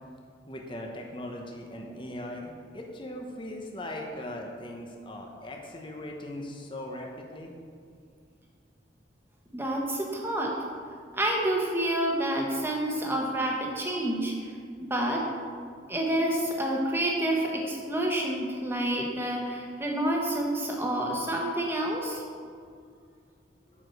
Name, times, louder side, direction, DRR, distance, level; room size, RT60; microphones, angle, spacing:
voice 1, 0.5-7.5, left 1 dB, 25° left, 1 dB, 0.9 m, -39 dB
voice 2, 9.5-10.5 11.1-14.5 14.8-15.2 15.9-22.2, right 1 dB, 15° right, -1 dB, 1.2 m, -28 dB
8.6 x 4.9 x 6.5 m, 2.2 s
head